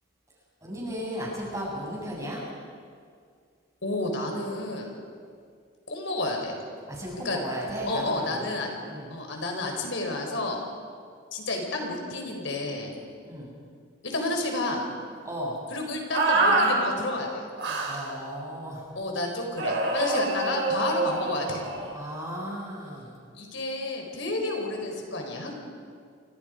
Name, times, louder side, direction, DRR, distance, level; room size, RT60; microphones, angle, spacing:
voice 1, 0.6-2.4 6.9-9.2 13.2-13.5 15.2-15.6 17.9-18.9 21.9-23.1, equal, 15° right, -4 dB, 7.8 m, -35 dB
voice 2, 3.8-4.9 5.9-6.5 7.2-7.4 7.9-8.7 9.1-10.6 11.3-12.9 14.0-14.8 15.7-17.4 18.9-21.7 23.3-25.5, left 2 dB, 70° left, 2 dB, 4.5 m, -30 dB
sound 1, 16.1-16.7 17.6-18.1 19.6-21.9, right 2 dB, 65° right, 5.0 m, -26 dB
30.0 x 25.5 x 5.2 m, 2.2 s
head